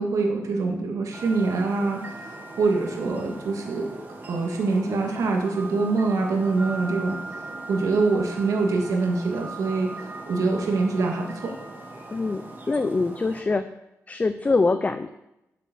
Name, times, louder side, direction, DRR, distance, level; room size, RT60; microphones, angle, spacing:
voice 1, 0.0-4.0 4.3-7.2 7.7-11.5, right 3 dB, 85° right, 1 dB, 2.2 m, -25 dB
sound 1, 1.1-13.4, right 2 dB, 35° right, 1.7 m, -39 dB
voice 2, 12.1-13.7 14.1-15.1, left 3 dB, 25° left, 10 dB, 0.5 m, -24 dB
8.4 x 7.5 x 7.1 m, 0.90 s
wide cardioid pair, 125°, 6 cm